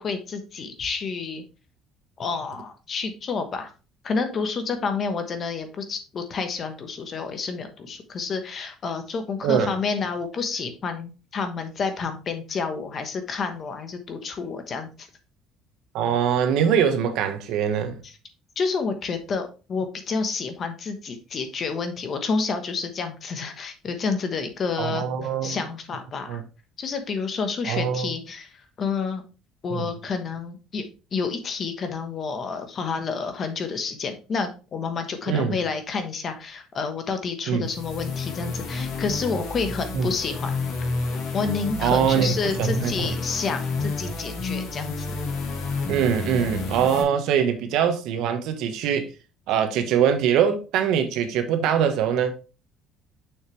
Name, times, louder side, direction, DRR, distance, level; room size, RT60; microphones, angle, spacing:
voice 1, 0.0-1.4 2.2-3.7 4.0-15.1 18.0-18.1 18.6-25.1 25.4-26.4 26.8-29.2 29.6-40.5 41.3-45.2, left 5 dB, 30° left, 1.1 m, -29 dB
voice 2, 15.9-18.0 24.8-25.6 26.3-26.4 27.6-28.1 29.7-29.9 35.3-35.6 37.5-37.7 39.9-40.1 41.8-43.1 45.9-49.1 49.5-52.4, right 8 dB, 70° right, 1.2 m, -23 dB
sound 1, 37.6-47.0, left 3 dB, 55° left, 1.8 m, -30 dB
6.5 x 6.4 x 3.2 m
cardioid pair, 165°, 0 cm